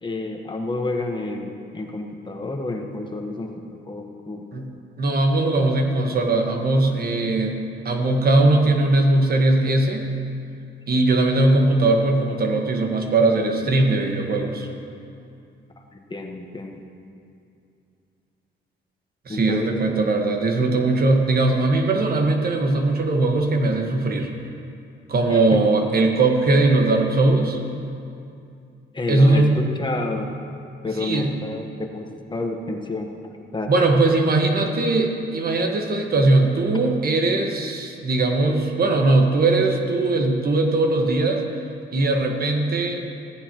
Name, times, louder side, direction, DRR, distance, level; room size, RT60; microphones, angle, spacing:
voice 1, 0.0-4.5 15.9-16.8 19.3-19.7 25.3-25.6 28.9-30.3 30.8-33.1 33.5-33.7, left 2 dB, 25° left, 2 dB, 1.3 m, -29 dB
voice 2, 5.0-7.6 7.8-10.1 10.9-14.7 19.2-24.3 25.1-27.6 29.1-29.6 31.0-31.3 33.7-41.4 41.9-43.0, right 2 dB, 50° right, 3 dB, 1.5 m, -20 dB
16.5 x 15.0 x 3.0 m, 2.5 s
cardioid pair, 90°, 20 cm